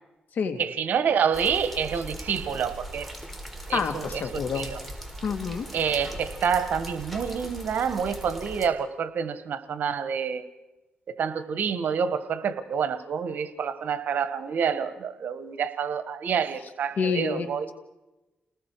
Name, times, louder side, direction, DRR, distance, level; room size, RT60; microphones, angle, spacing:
voice 1, 0.6-3.1 3.7-4.8 5.7-10.4 11.1-17.7, right 7 dB, 75° right, 12 dB, 1.4 m, -28 dB
sound 1, 1.3-8.7, right 1 dB, ahead, 3.8 m, -40 dB
voice 2, 3.7-4.7 5.2-5.7 17.0-17.5, left 5 dB, 70° left, 7 dB, 2.3 m, -28 dB
29.5 x 19.5 x 4.7 m, 1.1 s
cardioid pair, 80°, 3 cm